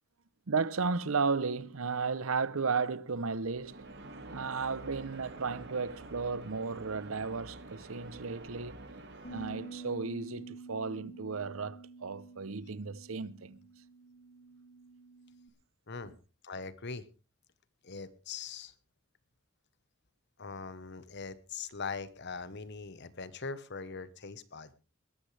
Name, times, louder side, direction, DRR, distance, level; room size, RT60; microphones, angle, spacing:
voice 1, 0.5-3.9 4.3-8.9 9.3-13.6, right 4 dB, 70° right, 0.8 m, -34 dB
sound 1, 3.4-10.3, right 2 dB, 55° right, 2.2 m, -48 dB
Bass guitar, 9.2-15.5, right 3 dB, 35° left, 2.4 m, -49 dB
voice 2, 16.4-17.0 17.8-18.7 20.4-24.7, left 4 dB, 55° left, 1.2 m, -41 dB
21.0 x 12.5 x 3.4 m
head